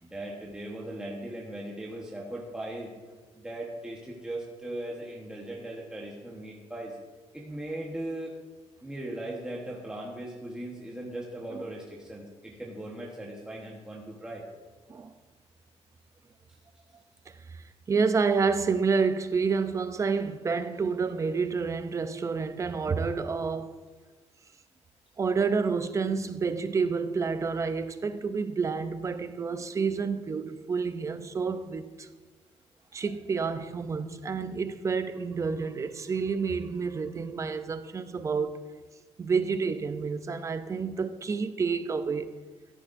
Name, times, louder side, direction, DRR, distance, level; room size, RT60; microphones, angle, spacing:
voice 1, 0.0-2.9 3.3-7.0 7.3-8.4 8.8-14.4, right 1 dB, 5° right, 1.1 m, -38 dB
voice 2, 17.5-23.8 25.2-32.1 32.9-38.6 39.2-42.3, right 5 dB, 25° right, 0.5 m, -29 dB
13.5 x 10.5 x 2.6 m
cardioid pair, 155°, 12 cm